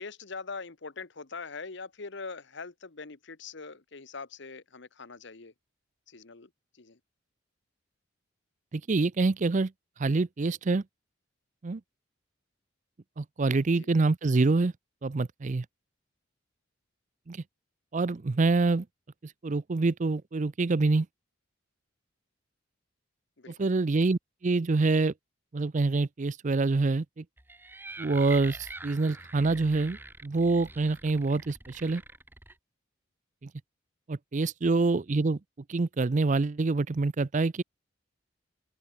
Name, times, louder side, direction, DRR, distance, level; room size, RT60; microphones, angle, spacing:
voice 1, 0.0-5.5 6.1-6.5 6.8-7.0 13.8-13.9 23.4-23.7, left 4 dB, 60° left, 1.1 m, -42 dB
voice 2, 8.7-9.7 10.0-10.8 11.6-11.8 13.2-14.7 15.0-15.7 17.3-17.4 17.9-18.9 19.2-21.1 23.5-25.1 25.5-27.2 28.0-32.0 33.4-33.5 34.1-35.4 35.7-37.6, right 3 dB, 35° right, 0.5 m, -26 dB
sound 1, 27.4-32.5, right 2 dB, 10° right, 1.1 m, -45 dB
open air
head